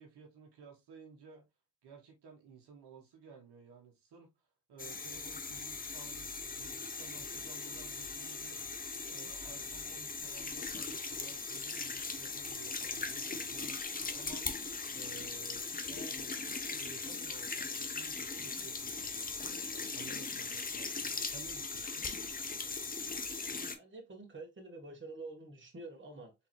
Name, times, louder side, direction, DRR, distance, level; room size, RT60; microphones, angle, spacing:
voice 1, 0.0-1.4 1.8-8.7 9.0-22.1, right 5 dB, 60° right, 1.3 m, -55 dB
sound 1, 4.8-23.8, left 4 dB, 20° left, 0.7 m, -39 dB
voice 2, 23.7-26.3, right 2 dB, 25° right, 1.3 m, -47 dB
3.6 x 3.0 x 3.0 m
hypercardioid pair, 45°, 45 cm